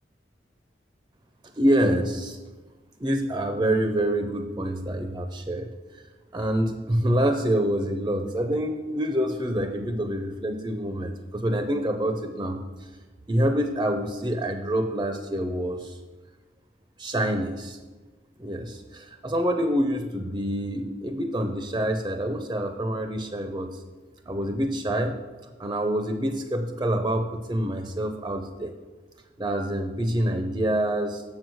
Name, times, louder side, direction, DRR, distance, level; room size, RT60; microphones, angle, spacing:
voice 1, 1.5-2.4 3.0-6.0 6.3-12.9 13.3-16.0 17.0-17.8 18.4-23.8 24.3-25.2 25.6-28.7 29.4-31.2, right 1 dB, 20° right, 6 dB, 0.5 m, -26 dB
7.3 x 6.2 x 6.2 m, 1.3 s
head